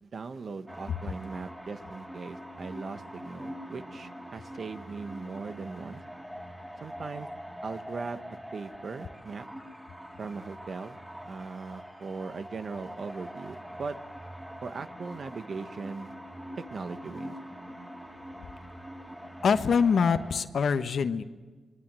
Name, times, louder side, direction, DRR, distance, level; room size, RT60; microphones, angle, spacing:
voice 1, 0.0-6.0 6.8-7.3 7.6-8.2 8.5-9.5 10.2-11.0 11.2-14.0 14.6-16.1 16.6-17.4, right 4 dB, 60° right, 10 dB, 1.4 m, -39 dB
sound 1, 0.7-20.4, equal, 10° right, 4.1 m, -44 dB
voice 2, 19.4-21.2, left 6 dB, 70° left, 10 dB, 1.2 m, -24 dB
28.5 x 23.0 x 7.7 m, 1.4 s
cardioid pair, 60°, 0 cm